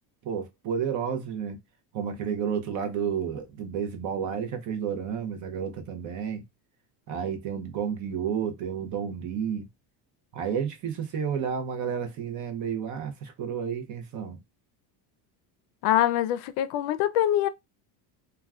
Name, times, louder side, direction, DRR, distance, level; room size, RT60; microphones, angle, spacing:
voice 1, 0.2-1.6 1.9-6.4 7.1-9.7 10.3-14.4, right 7 dB, 40° right, 0.5 m, -31 dB
voice 2, 15.8-17.5, left 12 dB, 75° left, 0.5 m, -24 dB
2.2 x 2.2 x 3.4 m
cardioid pair, 170°, 48 cm